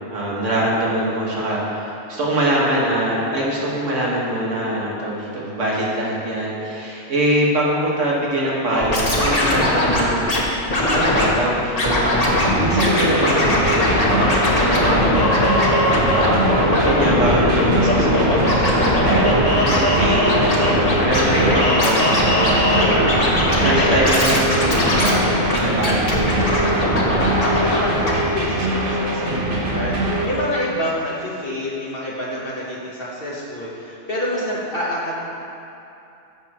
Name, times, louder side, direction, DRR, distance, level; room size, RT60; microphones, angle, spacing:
voice 1, 0.1-10.3 10.9-12.2 12.5-16.6 16.9-23.0 23.6-26.7, right 1 dB, 85° right, -5 dB, 2.0 m, -23 dB
Scratching (performance technique), 8.7-10.4 10.7-11.3 11.7-12.5 12.8-27.8 28.0-28.1, left 1 dB, 35° left, 1.3 m, -19 dB
sound 1, 12.2-30.2, right 1 dB, 45° right, 1.4 m, -23 dB
voice 2, 27.4-35.1, left 1 dB, 50° left, -7 dB, 1.3 m, -27 dB
14.5 x 6.6 x 3.0 m, 2.7 s
omnidirectional pair, 1.2 m